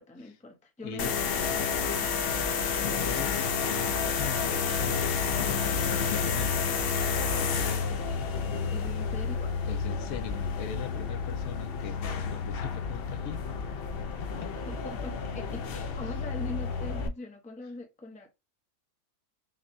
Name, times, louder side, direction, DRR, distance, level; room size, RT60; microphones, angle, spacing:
voice 1, 0.0-2.6 7.9-8.0 8.7-9.5 14.7-18.3, left 2 dB, 10° left, 0.5 m, -43 dB
voice 2, 0.8-1.2 3.0-5.2 6.1-6.7 7.3-7.9 9.7-13.4 14.2-14.5 16.0-16.1, left 9 dB, 75° left, 1.0 m, -40 dB
sound 1, 1.0-17.1, left 5 dB, 60° left, 0.6 m, -30 dB
6.0 x 2.2 x 2.6 m
omnidirectional pair, 1.5 m